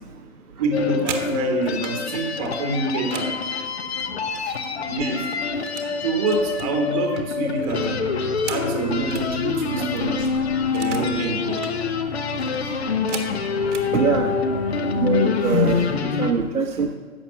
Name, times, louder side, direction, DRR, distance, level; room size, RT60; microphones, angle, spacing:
voice 1, 0.6-3.3 4.9-5.2 6.0-8.0 8.5-10.3 10.7-11.6, right 3 dB, 25° right, 3 dB, 1.3 m, -26 dB
sound 1, 0.7-16.3, left 5 dB, 45° left, 0.9 m, -26 dB
sound 2, 0.7-2.0 2.4-4.7 5.0-5.9 6.3-9.3 9.7-9.8 10.0-11.2 11.4-11.8 12.3-13.9 14.7-14.9 15.3-15.6 15.9-16.4, right 6 dB, 50° right, 1.4 m, -38 dB
sound 3, 7.7-16.0, equal, 15° left, 0.5 m, -36 dB
voice 2, 13.9-14.3 15.0-15.8 16.2-16.9, right 5 dB, 75° right, 1 dB, 1.3 m, -22 dB
12.0 x 7.3 x 6.1 m, 1.5 s
hypercardioid pair, 150°, 45 cm